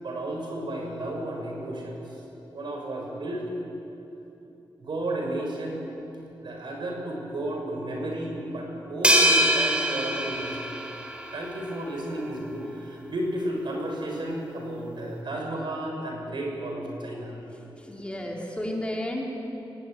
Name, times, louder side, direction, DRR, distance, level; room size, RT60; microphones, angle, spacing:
voice 1, 0.0-3.5 4.4-4.5 4.8-5.8 6.4-10.8 11.3-17.3, right 1 dB, 65° right, 0 dB, 6.0 m, -33 dB
sound 1, 9.0-11.5, right 1 dB, 10° right, 3.8 m, -23 dB
voice 2, 17.8-19.2, left 1 dB, 15° left, -1 dB, 3.5 m, -32 dB
23.5 x 17.0 x 9.3 m, 3.0 s
cardioid pair, 80°, 9 cm